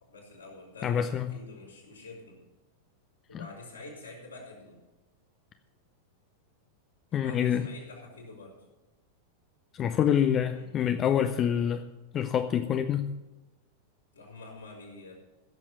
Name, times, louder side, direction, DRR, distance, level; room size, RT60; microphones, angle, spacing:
voice 1, 0.0-2.4 3.3-4.8 7.1-8.6 10.5-10.7 14.1-15.1, left 2 dB, 75° left, -3 dB, 4.7 m, -47 dB
voice 2, 0.8-1.3 7.1-7.7 9.7-11.9 12.1-13.2, left 9 dB, 30° left, 9 dB, 0.6 m, -26 dB
16.0 x 7.4 x 6.3 m, 1.1 s
figure-of-eight pair, 90°, 0 cm